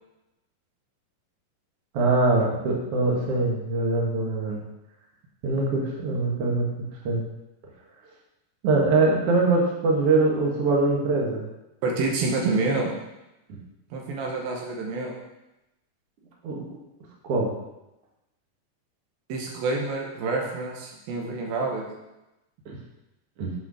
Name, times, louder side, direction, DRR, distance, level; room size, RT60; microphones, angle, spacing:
voice 1, 1.9-4.6 5.4-7.2 8.6-11.4 16.4-16.6 17.2-17.5 23.4-23.5, right 3 dB, 55° right, -1 dB, 1.8 m, -23 dB
voice 2, 11.8-12.9 13.9-15.1 19.3-21.8, right 3 dB, 75° right, 0 dB, 2.7 m, -27 dB
8.4 x 5.5 x 4.8 m, 0.96 s
omnidirectional pair, 4.4 m